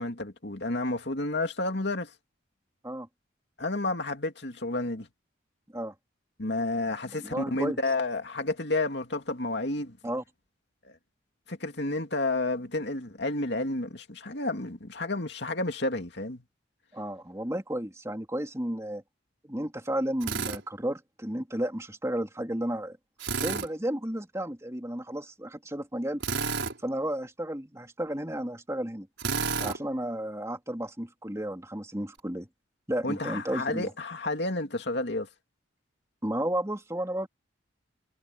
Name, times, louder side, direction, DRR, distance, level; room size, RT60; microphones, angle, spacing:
voice 1, 0.0-2.1 3.6-5.1 6.4-10.0 10.8-10.9 11.5-16.4 33.0-35.3, left 2 dB, 60° left, 2.7 m, -31 dB
voice 2, 7.2-7.8 10.0-10.2 16.9-19.0 19.4-23.0 23.4-26.2 26.8-29.1 29.6-32.5 32.9-33.9 36.2-37.3, right 1 dB, 15° right, 3.4 m, -33 dB
Drill, 20.2-20.6 23.2-23.7 26.2-26.8 29.2-29.8, right 5 dB, 75° right, 5.0 m, -30 dB
head